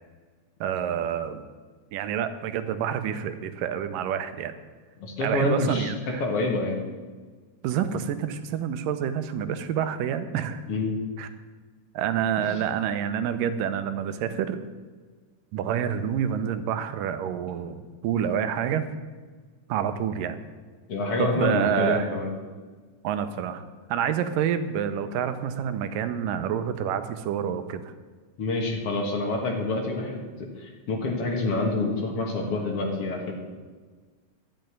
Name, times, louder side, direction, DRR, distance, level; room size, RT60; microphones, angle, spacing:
voice 1, 0.6-1.4 1.9-4.5 5.2-6.2 7.6-10.6 11.2-11.3 11.9-14.6 15.5-18.9 19.7-20.4 21.2-22.1 23.0-23.6 23.9-27.9, right 9 dB, 90° right, 10 dB, 2.4 m, -28 dB
voice 2, 5.0-5.9 6.2-6.8 10.7-11.0 20.9-22.3 28.4-33.3, left 2 dB, 50° left, 1 dB, 2.4 m, -27 dB
12.5 x 6.6 x 9.1 m, 1.5 s
omnidirectional pair, 3.8 m